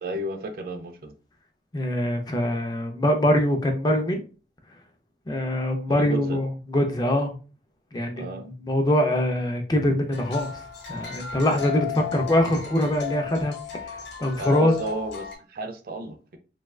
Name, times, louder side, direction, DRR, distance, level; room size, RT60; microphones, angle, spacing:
voice 1, 0.0-1.1 5.9-6.4 8.1-8.5 14.3-16.4, right 2 dB, 50° right, 6 dB, 0.4 m, -33 dB
voice 2, 1.7-4.2 5.3-7.4 7.9-10.5 10.9-13.5 13.8-13.9 14.2-14.7, left 1 dB, 20° left, 4 dB, 0.4 m, -23 dB
sound 1, 10.1-15.4, left 8 dB, 75° left, 0.9 m, -35 dB
3.3 x 2.2 x 2.3 m, 0.35 s
head